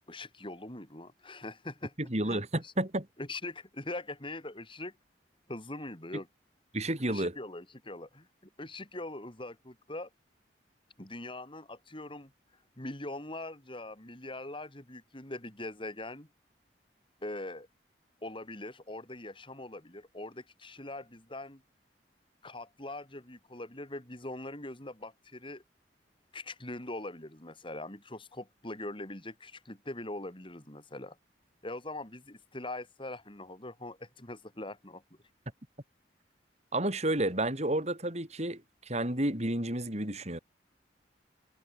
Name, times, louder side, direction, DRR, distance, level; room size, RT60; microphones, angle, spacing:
voice 1, 0.1-1.9 2.2-2.7 3.2-4.9 5.5-6.3 7.1-8.3 8.6-10.1 11.0-12.3 12.8-16.3 17.2-17.7 18.2-21.6 22.4-25.6 26.3-31.2 31.6-35.0, left 2 dB, 30° left, 4.5 m, -42 dB
voice 2, 2.1-3.0 6.7-7.4 36.7-38.6 38.9-40.4, right 1 dB, 40° right, 7.0 m, -31 dB
head